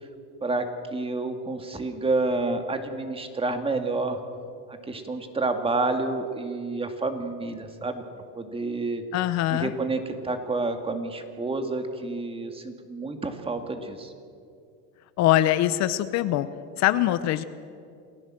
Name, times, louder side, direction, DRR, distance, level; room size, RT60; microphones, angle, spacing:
voice 1, 0.4-4.2 4.7-8.0 8.4-9.0 9.5-14.1, right 3 dB, 15° right, 6 dB, 2.2 m, -29 dB
voice 2, 9.1-9.7 15.2-16.5 16.8-17.4, left 14 dB, 55° left, 13 dB, 0.9 m, -23 dB
28.0 x 16.0 x 7.6 m, 2.4 s
cardioid pair, 130°, 33 cm